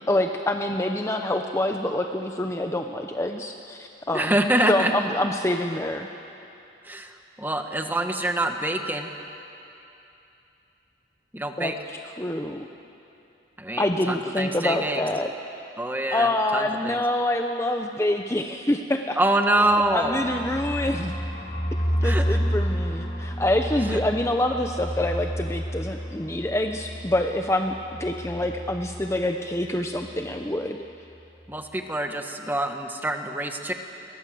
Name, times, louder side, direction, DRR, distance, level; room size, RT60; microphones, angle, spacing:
voice 1, 0.1-4.3 4.7-6.1 11.6-12.7 13.8-15.3 16.1-19.2 19.9-21.1 22.0-27.7 28.0-30.8, left 1 dB, 15° left, 4 dB, 0.8 m, -26 dB
voice 2, 4.1-4.9 6.8-9.1 11.3-11.7 13.6-15.0 15.8-17.0 19.2-20.2 22.0-22.4 23.9-24.0 31.5-33.7, right 1 dB, 10° right, 5 dB, 1.6 m, -26 dB
sound 1, 19.5-29.3 29.5-29.7 29.9-30.4, equal, 30° left, 3.5 m, -30 dB
29.5 x 23.0 x 7.8 m, 2.8 s
head